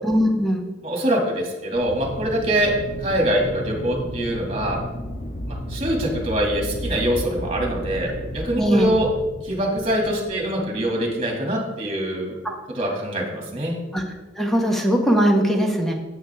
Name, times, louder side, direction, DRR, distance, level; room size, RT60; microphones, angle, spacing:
voice 1, 0.0-0.6 8.6-8.9 12.4-12.6 13.9-14.0 14.4-15.9, equal, ahead, 1 dB, 1.1 m, -20 dB
voice 2, 0.8-2.7 3.0-4.8 5.5-9.1 9.4-12.4 12.8-13.8, right 1 dB, 30° right, 0 dB, 2.1 m, -24 dB
Aircraft, 1.7-11.2, equal, 40° left, 1.3 m, -33 dB
9.7 x 8.3 x 3.5 m, 1.1 s
head